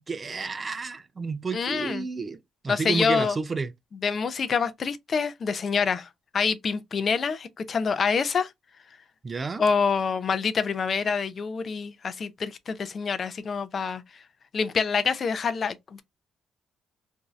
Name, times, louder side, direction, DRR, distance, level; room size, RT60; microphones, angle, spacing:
voice 1, 0.1-3.7 9.2-9.6, right 4 dB, 30° right, 0.4 m, -31 dB
voice 2, 1.5-2.1 2.7-3.4 4.0-6.1 6.3-8.5 9.6-14.0 14.5-16.0, left 5 dB, 45° left, 0.4 m, -26 dB
2.6 x 2.3 x 3.0 m
cardioid pair, 90°, 0 cm